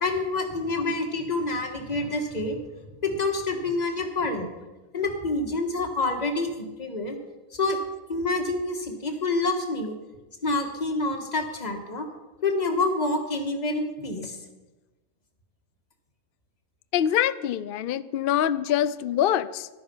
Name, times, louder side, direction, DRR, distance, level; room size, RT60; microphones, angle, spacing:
voice 1, 0.0-2.6 3.0-4.5 4.9-7.2 7.5-7.8 8.1-9.9 10.4-12.1 12.4-14.4, left 2 dB, 30° left, 4 dB, 1.7 m, -27 dB
voice 2, 16.9-19.7, left 10 dB, 70° left, 15 dB, 0.5 m, -24 dB
14.0 x 11.5 x 5.6 m, 1.2 s
omnidirectional pair, 1.5 m